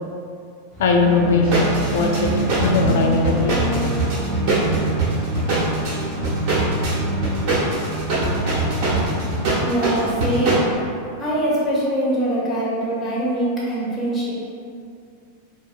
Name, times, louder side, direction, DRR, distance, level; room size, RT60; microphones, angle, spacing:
sound 1, 0.7-10.8, right 1 dB, 10° right, 0.5 m, -27 dB
voice 1, 0.8-3.6, left 3 dB, 60° left, 1 dB, 0.4 m, -19 dB
sound 2, 1.4-10.6, right 2 dB, 40° right, 1.0 m, -23 dB
voice 2, 9.6-10.7 11.2-14.3, right 1 dB, 15° left, -8 dB, 1.0 m, -23 dB
3.9 x 2.6 x 2.4 m, 2.4 s
figure-of-eight pair, 90°, 0 cm